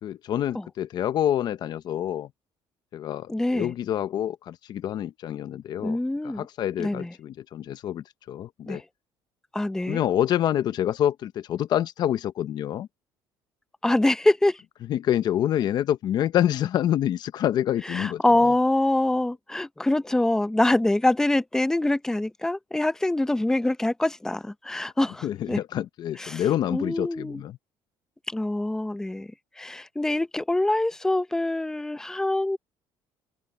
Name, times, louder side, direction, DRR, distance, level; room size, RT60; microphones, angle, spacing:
voice 1, 0.0-2.3 2.9-6.0 6.2-8.8 9.9-12.9 14.9-18.5 25.2-27.6, left 11 dB, 50° left, 0.6 m, -27 dB
voice 2, 3.3-3.7 5.8-6.5 6.8-7.1 8.7-8.8 9.5-10.0 13.8-14.6 17.8-25.6 26.2-26.4 26.7-27.4 28.3-32.6, left 1 dB, 5° left, 0.7 m, -25 dB
open air
cardioid pair, 140°, 9 cm